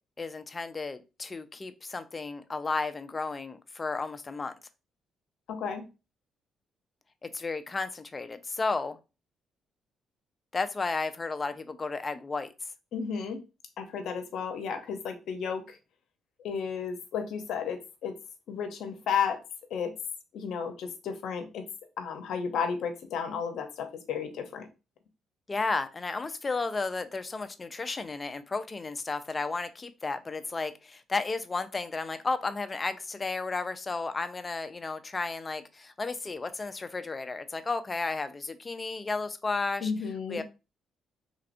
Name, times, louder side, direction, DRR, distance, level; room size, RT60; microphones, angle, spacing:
voice 1, 0.2-4.5 7.2-9.0 10.5-12.5 25.5-39.9 40.3-40.4, left 3 dB, 30° left, 0.4 m, -33 dB
voice 2, 5.5-5.8 12.9-13.4 13.8-15.8 16.4-18.1 18.5-19.4 19.7-19.9 20.3-21.6 22.0-24.7 39.8-40.4, left 6 dB, 75° left, 0.7 m, -33 dB
3.3 x 2.9 x 2.5 m
cardioid pair, 90°, 0 cm